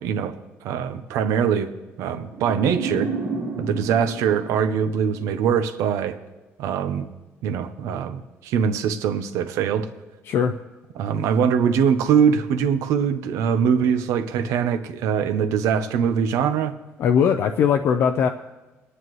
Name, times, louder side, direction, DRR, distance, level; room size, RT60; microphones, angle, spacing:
voice 1, 0.0-1.7 2.0-3.1 3.6-6.2 6.6-7.1 7.4-9.9 11.0-16.7, right 7 dB, 85° right, 0.8 m, -22 dB
sound 1, 2.3-5.5, right 4 dB, 60° right, 2.0 m, -31 dB
voice 2, 17.0-18.3, left 7 dB, 60° left, 0.5 m, -19 dB
22.0 x 9.7 x 3.2 m
cardioid pair, 145°, 5 cm